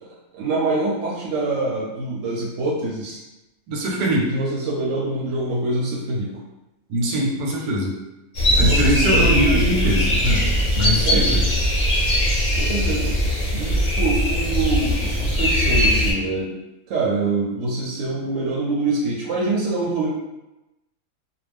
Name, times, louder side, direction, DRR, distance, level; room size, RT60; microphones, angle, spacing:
voice 1, 0.3-3.2 4.3-6.3 8.5-9.7 11.0-11.3 12.6-13.1 13.5-16.5 16.9-20.1, right 2 dB, 65° right, -4 dB, 0.8 m, -25 dB
voice 2, 3.7-4.3 6.9-7.9 8.6-10.5 10.7-11.4, equal, 85° right, -2 dB, 1.1 m, -22 dB
sound 1, 8.3-16.1, equal, 45° left, 0.6 m, -20 dB
2.4 x 2.1 x 3.3 m, 0.98 s
omnidirectional pair, 1.5 m